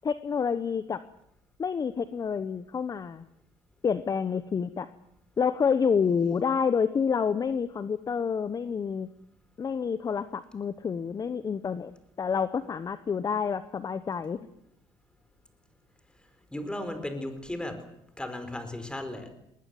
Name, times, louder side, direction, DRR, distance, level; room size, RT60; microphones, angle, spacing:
voice 1, 0.0-1.0 1.6-3.3 3.8-4.9 5.4-9.1 9.6-11.9 12.2-14.5, left 6 dB, 30° left, 13 dB, 1.0 m, -28 dB
voice 2, 16.5-17.9 18.2-19.3, left 1 dB, 10° left, 9 dB, 4.5 m, -35 dB
20.0 x 20.0 x 9.4 m, 0.79 s
cardioid pair, 110°, 12 cm